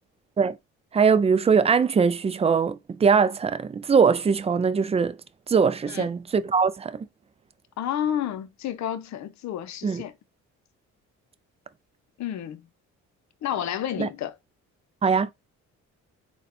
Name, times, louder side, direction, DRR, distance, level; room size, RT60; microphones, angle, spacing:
voice 1, 0.9-5.2 5.5-7.1 9.8-10.0 14.0-14.1 15.0-15.3, right 5 dB, 20° right, 0.3 m, -21 dB
voice 2, 7.8-10.1 12.2-12.7 13.4-14.3, left 10 dB, 65° left, 0.7 m, -30 dB
4.0 x 2.2 x 4.1 m
cardioid pair, 90°, 30 cm